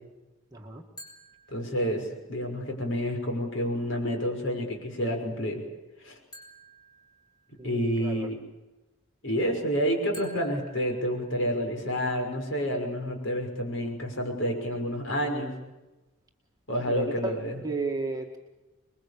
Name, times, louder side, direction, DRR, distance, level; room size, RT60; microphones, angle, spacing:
voice 1, 0.5-0.8 7.6-8.3 16.8-17.4 17.6-18.4, right 2 dB, 15° right, 1 dB, 1.9 m, -33 dB
sound 1, 1.0-2.3 6.3-7.8 10.1-11.8, equal, 20° left, 6.7 m, -51 dB
voice 2, 1.5-5.6 6.0-6.2 7.6-8.4 9.2-15.6 16.7-17.6, equal, 60° left, 3 dB, 6.0 m, -29 dB
27.5 x 21.5 x 8.6 m, 1.1 s
head